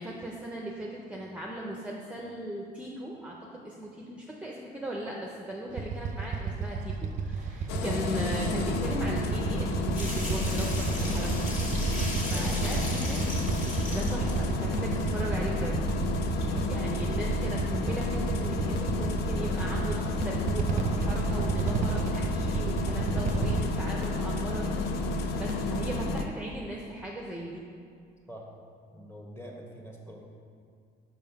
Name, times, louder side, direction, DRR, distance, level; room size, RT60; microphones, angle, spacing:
voice 1, 0.0-11.5 12.3-13.2 13.6-15.8 16.7-27.6, right 1 dB, 5° right, -2 dB, 0.6 m, -38 dB
Motorcycle / Idling, 5.7-23.6, right 5 dB, 45° right, 0.5 m, -32 dB
Engine starting, 7.7-26.2, left 2 dB, 80° left, 0.5 m, -31 dB
sound 1, 9.9-14.4 14.9-15.0 16.1-16.2 16.4-16.5, left 1 dB, 50° left, 1.8 m, -38 dB
voice 2, 12.2-13.2 16.5-16.9 28.3-28.5 28.9-30.2, equal, 15° left, -1 dB, 1.2 m, -46 dB
5.5 x 4.6 x 5.6 m, 2.2 s
cardioid pair, 110°, 17 cm